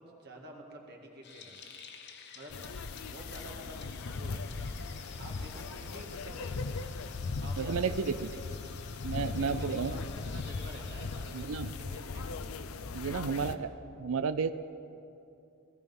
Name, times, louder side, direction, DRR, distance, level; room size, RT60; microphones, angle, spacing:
voice 1, 0.0-1.6 2.3-2.6 3.1-3.8 4.1-4.9 5.2-6.6 7.4-8.6 9.2-12.3 13.0-13.5, right 1 dB, 50° right, 1 dB, 2.0 m, -49 dB
sound 1, 1.2-11.5, left 6 dB, 50° left, 1.2 m, -52 dB
sound 2, 2.5-13.6, left 4 dB, 70° left, 0.6 m, -38 dB
voice 2, 7.6-8.3 9.0-9.9 11.3-11.7 12.9-13.7 14.0-14.5, right 5 dB, 65° right, 12 dB, 0.5 m, -32 dB
17.5 x 14.5 x 5.4 m, 2.7 s
head